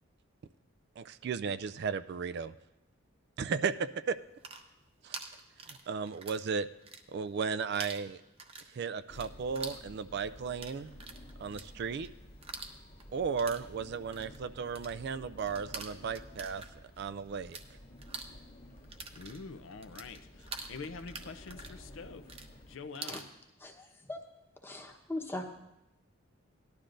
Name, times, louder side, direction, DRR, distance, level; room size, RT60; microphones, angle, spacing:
voice 1, 1.0-2.5 3.4-4.2 5.0-5.2 5.7-6.7 7.1-8.2 8.7-11.0 11.4-12.1 13.1-16.6 17.0-17.6, right 5 dB, 55° right, 13 dB, 0.3 m, -35 dB
sound 1, 4.2-6.5 6.7-7.5 7.7-17.7 17.9-23.3, right 4 dB, 30° right, 0.7 m, -46 dB
sound 2, 9.1-22.8, left 1 dB, 50° left, 1.5 m, -52 dB
voice 2, 19.1-22.2 22.7-23.2, left 4 dB, 65° left, 10 dB, 0.5 m, -45 dB
voice 3, 23.6-24.2 24.6-25.4, left 1 dB, 10° left, 1 dB, 1.0 m, -40 dB
18.0 x 12.0 x 2.6 m, 0.92 s
head